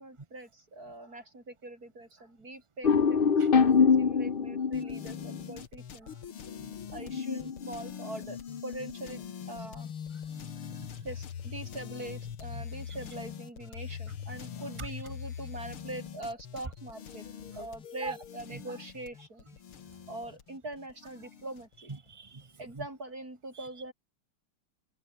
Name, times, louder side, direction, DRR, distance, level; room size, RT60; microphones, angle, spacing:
voice 1, 0.0-6.2 6.9-9.9 11.0-17.3 17.5-19.4 20.1-21.9 22.6-23.9, right 2 dB, 45° right, 8.4 m, -43 dB
sound 1, 2.8-5.6 7.0-8.1, left 6 dB, 35° left, 1.0 m, -25 dB
sound 2, 4.7-21.9, left 8 dB, 90° left, 2.7 m, -43 dB
voice 2, 10.3-10.9 12.5-13.0 14.8-14.9 18.0-18.2 18.5-18.8 21.8-22.5 22.7-22.9 23.5-23.8, right 4 dB, 20° right, 1.1 m, -44 dB
open air
omnidirectional pair, 2.3 m